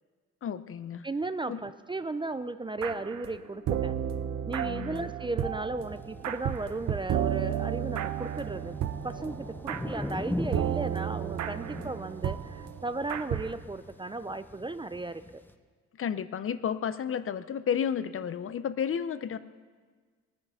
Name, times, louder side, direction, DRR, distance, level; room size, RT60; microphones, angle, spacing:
voice 1, 0.4-1.1 1.5-1.6 4.6-5.1 16.0-19.4, left 8 dB, 45° left, 13 dB, 0.6 m, -32 dB
voice 2, 1.0-4.0 4.5-8.8 9.0-15.4, right 3 dB, 15° right, 12 dB, 0.5 m, -35 dB
sound 1, 2.8-3.4 3.7-13.5, right 10 dB, 65° right, 0.8 m, -33 dB
sound 2, 5.8-15.5, left 1 dB, 5° left, 0.8 m, -41 dB
19.0 x 9.9 x 5.6 m, 1.5 s
cardioid pair, 90°, 30 cm